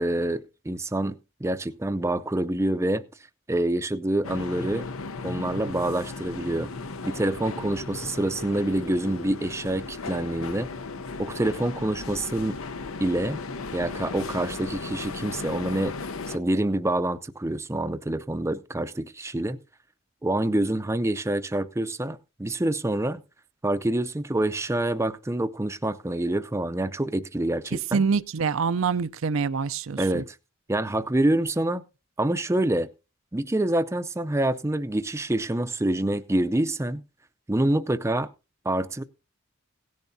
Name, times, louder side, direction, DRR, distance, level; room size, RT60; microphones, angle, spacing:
voice 1, 0.0-3.0 3.5-4.9 5.2-6.7 7.0-10.7 11.2-12.6 13.0-13.4 13.7-15.9 16.3-19.6 20.2-23.2 23.6-28.0 30.0-30.3 30.7-31.8 32.2-32.9 33.3-37.0 37.5-38.3 38.6-39.0, right 1 dB, 15° right, 0.5 m, -26 dB
sound 1, 4.2-16.4, left 4 dB, 90° left, 0.8 m, -36 dB
voice 2, 27.9-30.2, right 5 dB, 70° right, 0.5 m, -25 dB
17.0 x 10.5 x 2.7 m
head